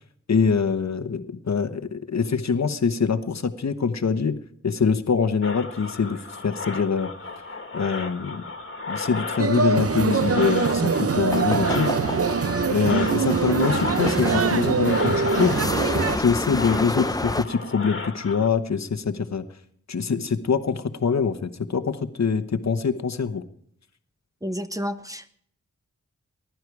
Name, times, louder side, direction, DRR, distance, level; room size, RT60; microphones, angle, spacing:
voice 1, 0.3-4.4 4.6-7.1 7.7-8.4 8.9-11.9 12.7-15.6 16.2-19.4 19.9-23.4, left 5 dB, 60° left, 10 dB, 1.1 m, -24 dB
sound 1, 5.4-18.5, left 3 dB, 40° left, 1.9 m, -34 dB
sound 2, 9.4-16.2, right 5 dB, 50° right, 0.7 m, -23 dB
sound 3, 11.2-17.4, left 2 dB, 10° left, 0.5 m, -29 dB
voice 2, 24.4-25.3, equal, 10° right, 9 dB, 1.0 m, -30 dB
20.0 x 11.5 x 4.8 m, 0.64 s
wide cardioid pair, 105°, 30 cm